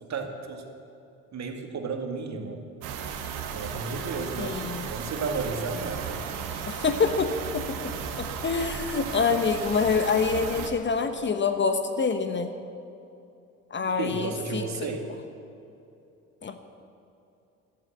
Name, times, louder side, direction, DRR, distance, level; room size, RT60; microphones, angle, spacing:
voice 1, 0.0-0.6 1.3-2.6 3.5-4.6 4.9-6.2 13.9-15.1, right 4 dB, 45° right, 4 dB, 2.1 m, -33 dB
sound 1, 2.8-10.7, right 7 dB, 65° right, 1.7 m, -35 dB
voice 2, 4.4-4.9 6.7-7.8 8.2-12.5 13.7-14.6 16.4-16.6, left 5 dB, 30° left, 8 dB, 1.1 m, -26 dB
13.0 x 12.5 x 7.6 m, 2.7 s
hypercardioid pair, 60°, 40 cm